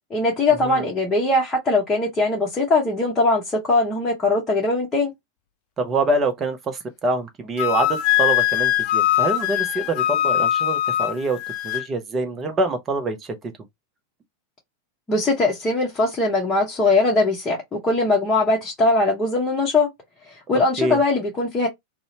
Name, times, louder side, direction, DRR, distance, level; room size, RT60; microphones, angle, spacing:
voice 1, 0.1-5.1 15.1-19.9 20.3-21.7, left 2 dB, 15° left, 0.8 m, -21 dB
voice 2, 5.8-11.4 11.6-13.2 20.8-21.0, right 2 dB, 25° right, 0.5 m, -25 dB
Wind instrument woodwind instrument, 7.6-11.9, left 13 dB, 45° left, 0.3 m, -21 dB
2.6 x 2.1 x 2.7 m
figure-of-eight pair, 90°, 0 cm